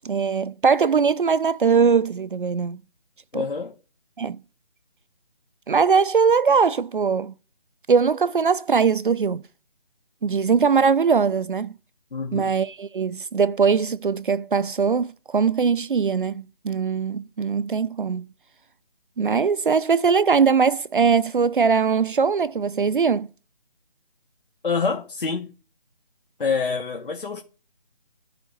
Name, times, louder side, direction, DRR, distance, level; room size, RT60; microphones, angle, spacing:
voice 1, 0.0-2.8 3.3-3.5 4.2-4.4 5.7-7.3 7.9-9.4 10.2-11.7 12.3-18.3 19.2-23.3, right 5 dB, 60° right, 0.5 m, -21 dB
voice 2, 3.3-3.7 12.1-12.5 24.6-25.5 26.4-27.4, left 5 dB, 60° left, 1.2 m, -26 dB
11.0 x 5.0 x 6.5 m
figure-of-eight pair, 170°, 30 cm